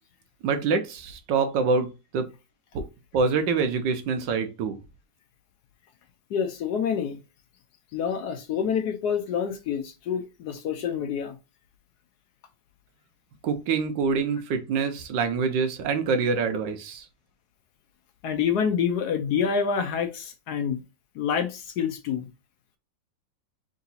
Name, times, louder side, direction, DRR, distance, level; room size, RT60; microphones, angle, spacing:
voice 1, 0.4-1.9 2.1-2.3 2.7-2.8 3.1-4.8 13.4-17.1, right 5 dB, 80° right, 1.3 m, -25 dB
voice 2, 6.3-7.2 7.9-11.4 18.2-20.8 21.1-22.3, left 7 dB, 70° left, 1.1 m, -27 dB
3.8 x 2.6 x 4.0 m
omnidirectional pair, 2.0 m